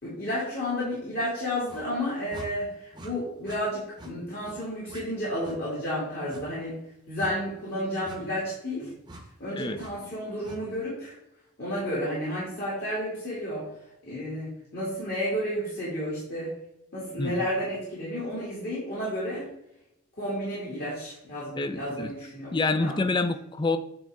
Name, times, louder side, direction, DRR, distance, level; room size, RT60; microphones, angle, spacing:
voice 1, 0.0-6.8 7.1-8.9 9.4-11.1 11.6-13.7 14.0-16.5 16.9-19.5 20.2-23.1, equal, 45° left, -8 dB, 2.5 m, -32 dB
sound 1, 1.7-1.9 2.3-2.5 2.9-3.1 3.4-3.6 4.0-4.1 4.4-4.6 4.9-5.0 5.4-5.6 6.3-6.5 7.2-7.4 8.0-8.2 9.0-9.2 9.7-9.9 10.4-10.6, right 1 dB, 20° right, 0.8 m, -44 dB
voice 2, 21.6-22.1 22.5-23.8, left 3 dB, 20° left, 9 dB, 0.4 m, -27 dB
8.8 x 4.1 x 3.5 m, 0.82 s
head